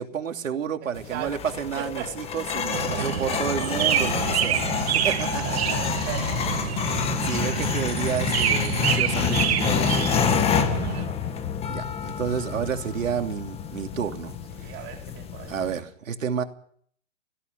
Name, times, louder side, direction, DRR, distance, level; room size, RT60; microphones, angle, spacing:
voice 1, 0.0-4.7 5.0-5.7 6.5-10.1 11.7-14.4 14.6-14.9 15.5-16.4, right 7 dB, 75° right, 3.0 m, -31 dB
voice 2, 0.8-1.5 1.8-2.1 2.7-3.7 5.1-6.5 10.5-11.4 14.5-15.6, right 9 dB, 25° right, 5.2 m, -39 dB
sound 1, 1.0-15.8, left 7 dB, 15° left, 1.5 m, -28 dB
sound 2, 2.7-11.1, right 10 dB, 50° right, 2.6 m, -27 dB
19.5 x 15.0 x 9.2 m
hypercardioid pair, 145°, 39 cm